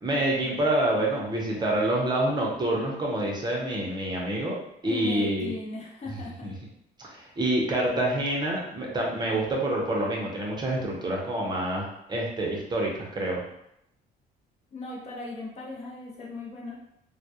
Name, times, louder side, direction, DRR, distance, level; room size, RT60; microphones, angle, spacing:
voice 1, 0.0-4.5 4.8-5.5 6.1-6.2 6.4-6.5 7.0-13.4, right 1 dB, 25° right, -2 dB, 0.6 m, -27 dB
voice 2, 4.8-6.5 14.7-16.7, left 3 dB, 40° left, -3 dB, 0.6 m, -38 dB
2.2 x 2.0 x 2.7 m, 0.79 s
cardioid pair, 110°, 17 cm